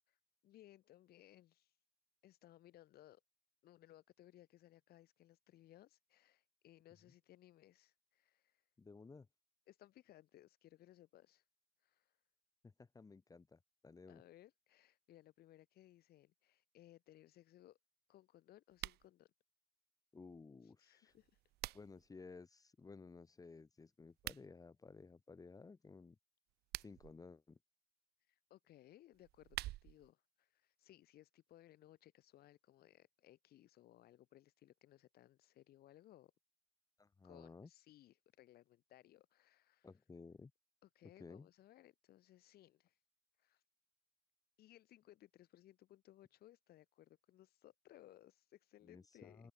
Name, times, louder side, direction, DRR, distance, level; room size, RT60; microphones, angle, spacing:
voice 1, 0.4-1.7 2.2-3.2 3.6-8.6 9.7-11.4 11.8-12.2 14.1-17.8 18.1-19.3 20.6-21.4 28.3-36.3 37.2-39.9 40.8-43.0 43.4-43.6 44.6-49.5, left 14 dB, 65° left, 1.5 m, -64 dB
voice 2, 8.8-9.3 12.6-14.2 20.1-21.1 21.7-26.2 26.8-27.6 37.0-37.7 39.8-40.5 41.2-41.5 48.8-49.5, left 4 dB, 20° left, 1.3 m, -56 dB
sound 1, 18.7-19.1 21.1-22.1 24.1-24.5 26.5-27.1 29.1-30.1, right 17 dB, 70° right, 0.6 m, -47 dB
open air
cardioid pair, 110°, 17 cm